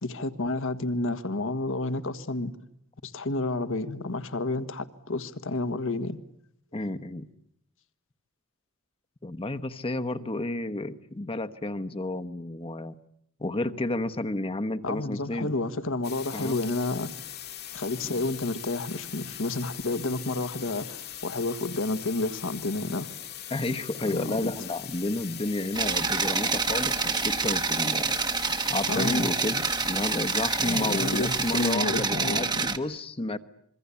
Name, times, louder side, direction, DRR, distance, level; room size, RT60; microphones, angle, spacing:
voice 1, 0.0-2.5 3.0-6.2 14.8-17.1 17.7-23.1 24.1-24.5 28.9-29.3 30.6-32.7, left 2 dB, 65° left, 1.6 m, -30 dB
voice 2, 6.7-7.2 9.2-13.0 13.4-15.5 16.3-16.6 23.5-28.2 28.7-33.4, left 2 dB, 25° left, 1.2 m, -31 dB
sound 1, 16.0-31.7, left 11 dB, 50° left, 1.9 m, -41 dB
spaceship mixer, 25.7-32.8, right 4 dB, 20° right, 1.2 m, -27 dB
26.0 x 23.5 x 8.5 m
head